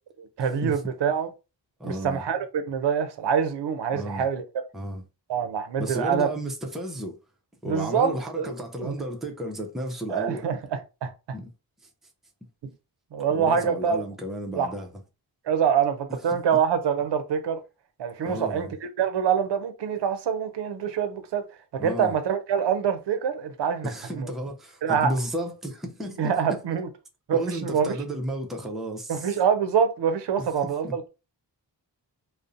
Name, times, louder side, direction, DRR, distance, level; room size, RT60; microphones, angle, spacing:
voice 1, 0.2-1.3 1.8-4.4 5.3-6.3 7.6-9.0 10.1-10.6 11.0-11.1 12.6-12.7 13.1-14.0 14.6-14.7 15.5-17.6 18.0-21.5 21.7-23.9 24.2-24.3 24.8-25.1 26.2-26.9 27.3-27.9 29.1-31.1, right 7 dB, 70° right, 0.5 m, -25 dB
voice 2, 1.8-2.2 3.9-4.3 4.7-5.0 5.8-7.2 7.6-10.4 11.3-11.5 13.3-14.9 16.3-16.4 18.2-18.8 21.8-22.1 23.8-26.6 27.3-29.3 30.4-31.0, right 1 dB, ahead, 0.4 m, -33 dB
2.5 x 2.0 x 2.5 m
wide cardioid pair, 70°, 43 cm